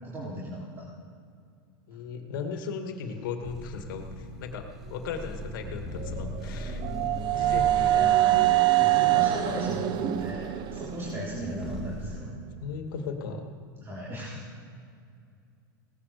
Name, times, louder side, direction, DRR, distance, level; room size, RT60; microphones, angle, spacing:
voice 1, 0.0-0.9 7.9-8.4 8.8-12.3 13.8-14.4, equal, 20° right, -6 dB, 3.7 m, -37 dB
voice 2, 1.9-6.8 7.3-8.1 10.7-10.9 12.6-13.5, left 5 dB, 70° left, 4 dB, 2.5 m, -37 dB
sound 1, 3.4-12.2, left 1 dB, 5° right, 3.0 m, -40 dB
sound 2, 6.0-11.9, right 15 dB, 40° right, 0.8 m, -25 dB
18.0 x 11.5 x 6.9 m, 2.3 s
hypercardioid pair, 110°, 11 cm